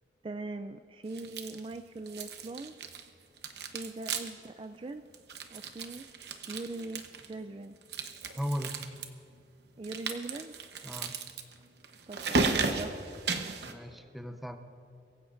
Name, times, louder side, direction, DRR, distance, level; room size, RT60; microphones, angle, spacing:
voice 1, 0.2-2.7 3.7-5.0 5.5-6.1 6.5-7.7 9.8-10.5 12.1-13.0, right 2 dB, 30° right, 8 dB, 0.3 m, -41 dB
sound 1, 1.1-1.8 2.1-3.1 3.4-4.5 4.8-4.9 5.1-7.3 7.8-9.1 9.8-13.7, right 4 dB, 65° right, 1.0 m, -35 dB
voice 2, 8.4-8.8 10.8-11.2 13.7-14.6, equal, ahead, 6 dB, 0.7 m, -36 dB
23.0 x 15.5 x 2.6 m, 2.8 s
head